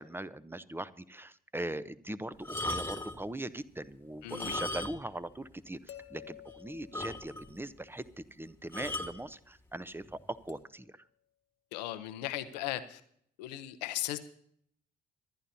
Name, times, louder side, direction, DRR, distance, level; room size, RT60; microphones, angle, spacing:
voice 1, 0.0-8.0 8.3-10.9, right 1 dB, 10° right, 15 dB, 0.9 m, -40 dB
sound 1, 2.4-3.3 4.2-5.2 5.5-5.6 6.1-6.2 6.5-6.6 6.9-7.6 8.7-9.2 10.0-10.3, left 2 dB, 10° left, 1.6 m, -37 dB
voice 2, 4.2-4.6 11.7-13.0 13.4-14.2, left 14 dB, 80° left, 11 dB, 0.9 m, -37 dB
sound 2, 5.9-7.9 10.5-10.9 12.1-12.2, left 11 dB, 65° left, 1.5 m, -52 dB
26.0 x 11.5 x 2.8 m, 0.65 s
hypercardioid pair, 45°, 21 cm